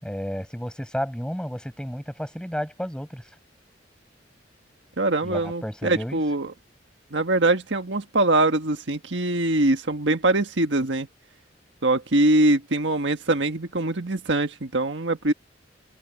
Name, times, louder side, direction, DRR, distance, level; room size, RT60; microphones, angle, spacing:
voice 1, 0.0-3.3 5.2-6.2, equal, 5° left, 7.6 m, -32 dB
voice 2, 5.0-6.5 7.1-11.1 11.8-15.3, right 2 dB, 75° right, 1.6 m, -23 dB
open air
head